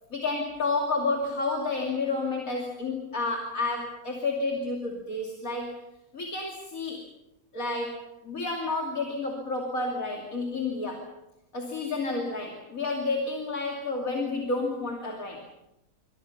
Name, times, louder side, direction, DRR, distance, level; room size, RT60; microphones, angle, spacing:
voice 1, 0.1-5.8 6.1-7.1 7.5-11.1 11.5-15.5, left 3 dB, 60° left, 1 dB, 3.2 m, -30 dB
26.5 x 26.0 x 5.7 m, 0.88 s
omnidirectional pair, 1.6 m